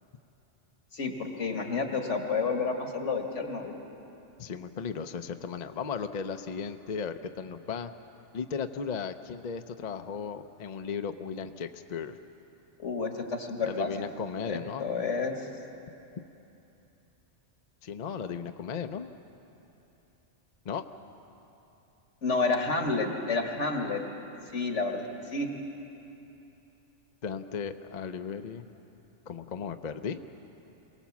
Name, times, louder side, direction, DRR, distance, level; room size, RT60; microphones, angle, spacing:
voice 1, 0.9-3.8 12.8-14.1 14.5-15.3 22.2-24.0 24.5-25.1 25.3-25.5, left 4 dB, 75° left, 3 dB, 2.0 m, -30 dB
voice 2, 4.4-7.9 8.3-12.2 13.7-14.8 17.8-19.1 20.6-20.8 27.2-28.6 29.3-30.2, left 6 dB, 45° left, 8 dB, 0.6 m, -36 dB
24.0 x 18.0 x 7.2 m, 3.0 s
omnidirectional pair, 1.2 m